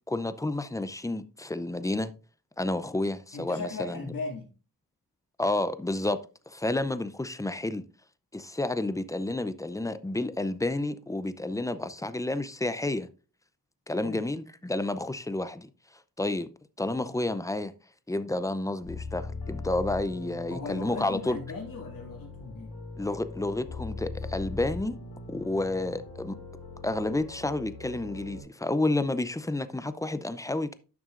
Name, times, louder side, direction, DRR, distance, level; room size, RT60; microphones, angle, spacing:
voice 1, 0.1-2.1 2.6-4.0 5.4-7.8 8.3-13.1 13.9-15.7 16.2-16.5 16.8-17.7 18.1-21.4 23.0-25.0 25.3-26.4 26.8-30.7, left 2 dB, 10° left, 0.5 m, -30 dB
voice 2, 3.3-4.5 13.9-14.3 20.5-22.7, left 4 dB, 60° left, 2.4 m, -38 dB
sound 1, 18.8-28.4, left 3 dB, 85° left, 4.1 m, -40 dB
11.0 x 6.1 x 2.5 m
cardioid pair, 85°, 39 cm